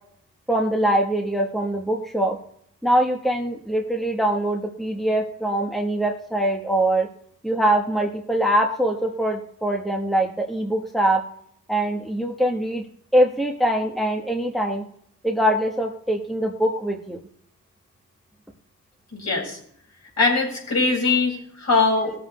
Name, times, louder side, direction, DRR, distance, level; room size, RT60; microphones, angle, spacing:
voice 1, 0.5-2.4 2.8-7.1 7.4-11.2 11.7-12.8 13.1-14.8 15.2-17.2, right 1 dB, ahead, 2 dB, 1.3 m, -23 dB
voice 2, 19.1-19.6 20.2-22.1, left 3 dB, 50° left, -2 dB, 5.3 m, -21 dB
18.0 x 7.6 x 3.2 m, 0.65 s
cardioid pair, 100°, 33 cm